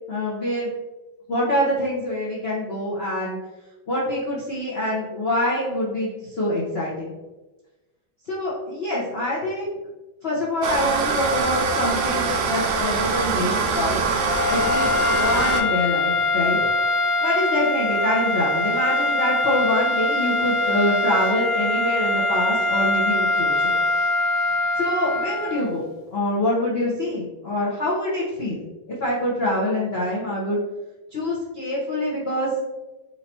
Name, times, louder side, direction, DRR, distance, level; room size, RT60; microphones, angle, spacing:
voice 1, 0.1-0.7 1.3-3.4 3.9-7.1 8.3-9.7 10.2-14.0 14.5-16.6 17.2-23.8 24.7-25.8 26.1-28.6 28.9-30.6 31.1-32.5, left 1 dB, 50° left, -6 dB, 0.7 m, -25 dB
sound 1, 10.6-15.6, right 5 dB, 70° right, 1.2 m, -24 dB
sound 2, 14.2-25.8, left 2 dB, 85° left, 1.4 m, -23 dB
4.6 x 2.8 x 4.1 m, 1.1 s
omnidirectional pair, 2.3 m